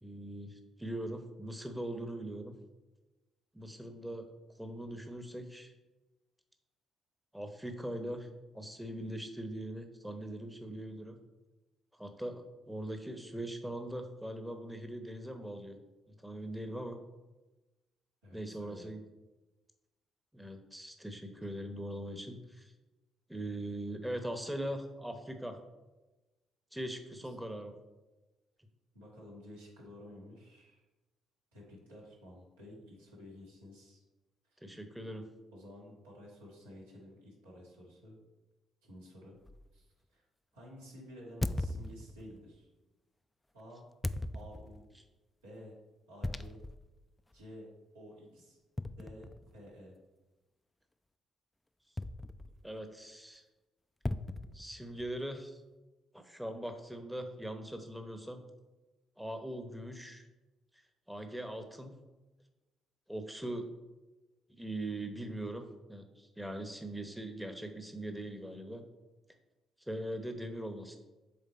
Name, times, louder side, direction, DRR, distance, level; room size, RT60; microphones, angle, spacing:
voice 1, 0.0-2.6 3.5-4.2 4.6-5.7 7.3-8.3 8.5-11.2 12.0-15.8 16.2-17.0 18.3-19.0 20.3-22.7 23.3-25.6 26.7-27.7 34.6-35.2 52.6-53.4 54.5-55.6 56.1-58.4 59.2-60.2 61.1-61.9 63.1-63.6 64.5-65.6 65.9-68.8 69.9-71.0, right 1 dB, 5° right, 6 dB, 0.9 m, -41 dB
voice 2, 18.2-18.9 28.9-30.8 31.5-34.0 35.5-38.2 38.8-39.4 39.7-40.3 40.5-42.7 43.5-43.9 44.3-44.8 45.4-45.8 46.1-46.6 47.3-48.6 49.0-50.0, equal, 85° right, -5 dB, 1.8 m, -52 dB
sound 1, 39.5-39.7 41.4-42.4 44.0-44.9 46.2-46.9 47.3-47.4 48.8-49.7 52.0-52.7 54.0-55.2, left 1 dB, 15° left, 0.4 m, -38 dB
7.5 x 3.5 x 4.2 m, 1.1 s
hypercardioid pair, 45°, 0 cm